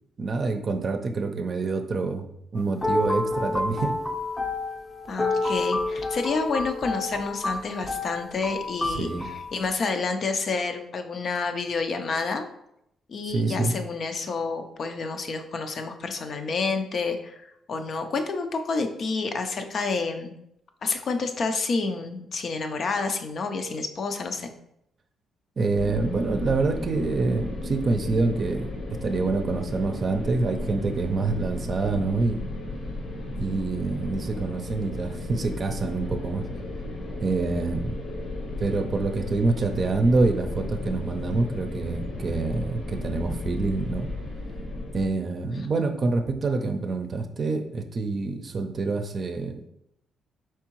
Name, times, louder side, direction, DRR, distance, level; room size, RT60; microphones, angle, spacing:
voice 1, 0.2-2.2 2.5-4.0 8.9-9.3 13.2-13.7 25.6-28.7 29.0-32.4 33.3-36.4 37.2-38.1 38.6-44.1 44.9-49.7, right 3 dB, 45° right, 6 dB, 0.6 m, -26 dB
sound 1, 2.6-9.5, left 2 dB, 15° left, 0.6 m, -29 dB
voice 2, 5.1-12.5 13.1-20.3 20.8-24.5, left 4 dB, 55° left, 6 dB, 0.5 m, -29 dB
sound 2, 25.7-45.1, left 2 dB, 80° left, 1.2 m, -34 dB
4.6 x 3.6 x 3.0 m, 0.77 s
cardioid pair, 90°, 0 cm